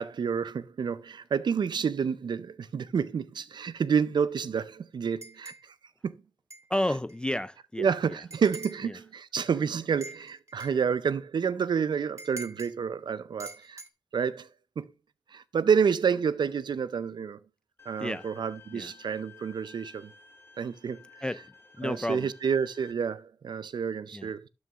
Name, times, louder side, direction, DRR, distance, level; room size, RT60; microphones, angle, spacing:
voice 1, 0.0-5.5 6.0-6.1 7.8-13.8 14.1-14.5 14.8-14.9 15.3-17.4 17.9-20.1 20.6-21.0 21.8-24.5, right 6 dB, 85° right, 0.5 m, -29 dB
sound 1, 5.2-5.7 6.5-6.7 7.1-7.2 8.3-8.9 10.0-10.8 12.2-12.7 13.4-13.9, right 3 dB, 40° right, 1.1 m, -44 dB
voice 2, 6.7-8.2 8.8-8.9 18.0-18.3 18.7-18.9 21.2-22.3 24.1-24.3, left 1 dB, 10° left, 0.3 m, -32 dB
Bowed string instrument, 17.8-22.9, left 6 dB, 30° left, 0.8 m, -54 dB
12.5 x 6.3 x 2.4 m
wide cardioid pair, 95°, 7 cm